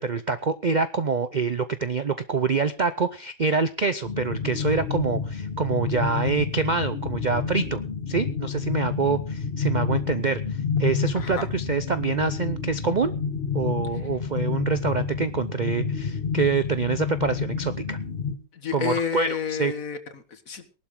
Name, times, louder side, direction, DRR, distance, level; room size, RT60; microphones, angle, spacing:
voice 1, 0.0-7.8 8.1-10.4 10.8-13.1 13.5-18.0 18.7-19.7, right 4 dB, 75° right, 12 dB, 0.4 m, -26 dB
sound 1, 4.0-18.4, left 6 dB, 35° left, 1.5 m, -29 dB
voice 2, 11.1-11.5 18.5-20.8, left 7 dB, 50° left, 10 dB, 1.8 m, -30 dB
19.0 x 12.0 x 3.8 m, 0.33 s
omnidirectional pair, 1.9 m